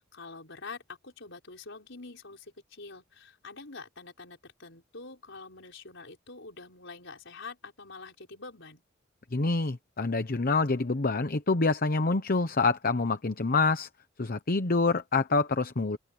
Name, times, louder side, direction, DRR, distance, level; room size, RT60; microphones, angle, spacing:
voice 1, 0.0-8.8, left 3 dB, 65° left, 5.3 m, -46 dB
voice 2, 9.3-13.9 14.2-16.0, left 3 dB, 45° left, 1.0 m, -26 dB
open air
head